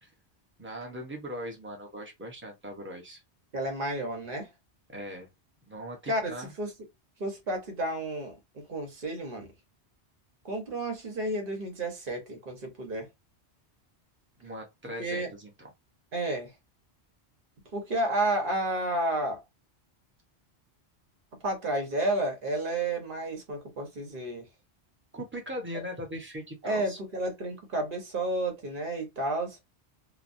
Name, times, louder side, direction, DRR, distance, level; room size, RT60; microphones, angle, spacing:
voice 1, 0.6-3.2 4.9-5.3 5.7-6.5 14.4-15.7 25.1-27.0, equal, 10° right, 0.8 m, -40 dB
voice 2, 3.5-4.5 6.1-6.7 7.2-9.5 10.4-13.1 15.0-15.3 16.1-16.5 17.7-19.4 21.4-24.5 25.7-25.8 26.6-29.6, right 1 dB, 50° right, 1.1 m, -31 dB
3.0 x 2.0 x 2.6 m
omnidirectional pair, 1.1 m